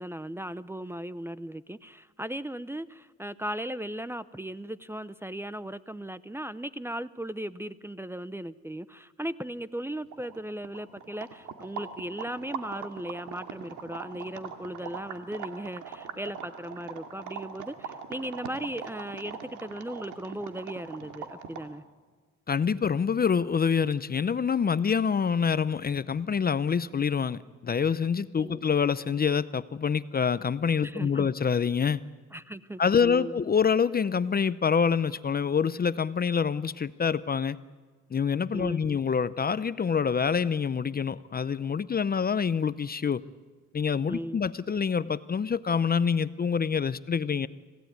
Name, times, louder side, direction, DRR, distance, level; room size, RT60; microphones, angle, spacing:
voice 1, 0.0-21.8 28.4-28.6 30.8-31.3 32.3-33.4 38.5-39.0 44.1-44.4, right 1 dB, 10° right, 16 dB, 0.7 m, -37 dB
sound 1, 9.8-9.9 10.1-21.8, right 7 dB, 85° right, 2.3 m, -41 dB
voice 2, 22.5-32.0 32.8-37.6 38.1-43.2 43.7-47.5, left 6 dB, 30° left, 16 dB, 0.6 m, -26 dB
26.5 x 17.0 x 9.3 m, 1.4 s
cardioid pair, 90°, 30 cm